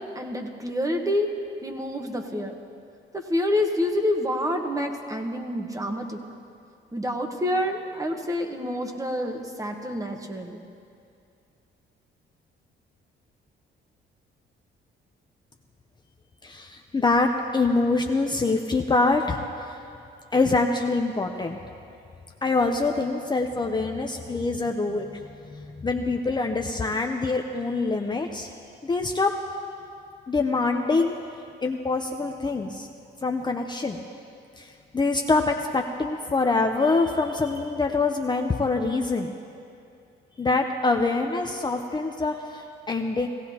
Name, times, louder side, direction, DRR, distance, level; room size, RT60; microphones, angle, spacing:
voice 1, 0.1-1.3 1.6-2.6 3.1-6.2 6.9-10.6, left 1 dB, 15° right, 3 dB, 1.3 m, -28 dB
voice 2, 16.4-19.8 20.3-21.6 22.4-25.2 25.5-28.5 28.8-29.4 30.3-31.1 31.6-32.9 33.2-34.0 34.6-39.3 40.4-43.3, left 3 dB, 20° left, 3 dB, 0.7 m, -25 dB
17.5 x 16.0 x 2.9 m, 2.5 s
cardioid pair, 90°, 20 cm